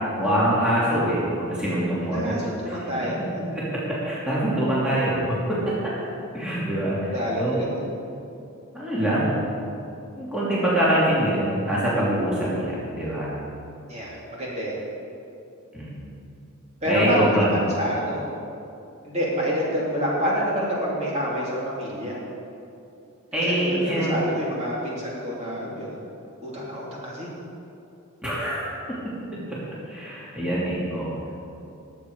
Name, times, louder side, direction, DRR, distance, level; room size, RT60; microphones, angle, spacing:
voice 1, 0.2-2.8 3.5-3.6 4.0-5.7 6.3-7.7 8.7-9.3 10.2-13.3 15.7-16.0 16.8-17.5 23.3-24.1 28.2-28.7 29.5-29.6 29.9-31.1, right 1 dB, 5° right, -9 dB, 2.9 m, -24 dB
voice 2, 2.0-3.2 7.1-7.7 13.9-14.8 16.8-18.3 19.0-22.2 23.4-26.0 26.4-27.3, equal, 30° right, -6 dB, 3.2 m, -27 dB
20.5 x 8.3 x 4.9 m, 2.7 s
head